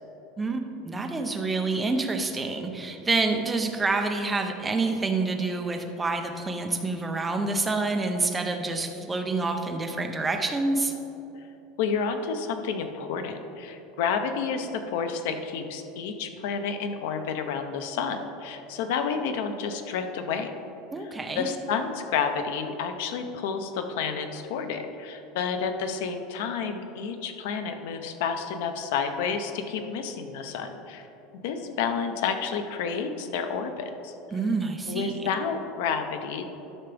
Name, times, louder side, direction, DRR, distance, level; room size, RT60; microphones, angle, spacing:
voice 1, 0.4-10.9 20.9-21.5 34.3-35.3, right 3 dB, 10° right, 4 dB, 0.6 m, -27 dB
voice 2, 11.8-20.5 21.4-31.1 31.4-34.1 34.9-36.5, left 6 dB, 70° left, 7 dB, 0.7 m, -30 dB
13.0 x 5.7 x 3.4 m, 3.0 s
supercardioid pair, 165°, 0 cm